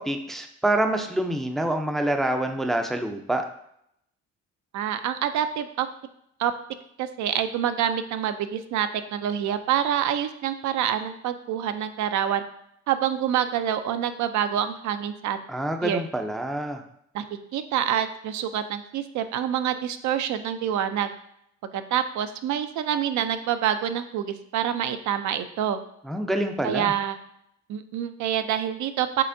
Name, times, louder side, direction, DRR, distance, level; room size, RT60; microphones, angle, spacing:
voice 1, 0.0-3.4 15.5-16.8 26.1-26.9, right 1 dB, ahead, 5 dB, 0.4 m, -26 dB
voice 2, 4.7-5.9 6.4-6.5 7.0-12.4 12.9-15.4 15.8-16.0 17.1-17.2 17.5-21.1 21.7-25.8 26.6-27.2 27.7-29.2, right 9 dB, 70° right, 10 dB, 0.4 m, -26 dB
5.5 x 3.5 x 2.6 m, 0.74 s
cardioid pair, 90°, 30 cm